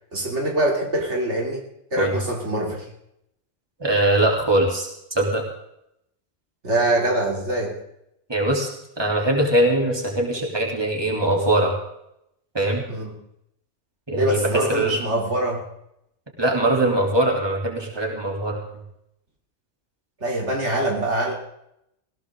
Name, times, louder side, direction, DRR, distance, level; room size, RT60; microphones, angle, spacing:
voice 1, 0.1-1.6 1.9-2.9 6.6-7.7 12.9-13.1 14.1-15.6 20.2-21.3, right 1 dB, 70° right, 0 dB, 3.7 m, -24 dB
voice 2, 3.8-5.4 8.3-8.7 9.0-11.7 12.5-12.8 14.1-15.0 16.4-18.6, right 1 dB, 20° right, 0 dB, 3.5 m, -21 dB
19.5 x 17.5 x 3.9 m, 0.78 s
omnidirectional pair, 1.2 m